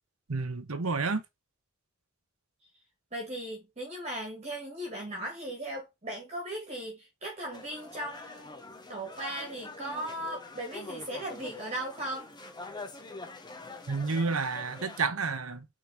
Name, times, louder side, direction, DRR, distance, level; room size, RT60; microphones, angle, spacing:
voice 1, 0.3-1.2 13.9-15.7, right 4 dB, 80° right, 1.0 m, -30 dB
voice 2, 3.1-8.6 8.9-12.3, right 1 dB, 30° right, 1.8 m, -37 dB
sound 1, 7.5-15.1, left 3 dB, 20° left, 0.9 m, -45 dB
4.9 x 3.8 x 5.2 m
head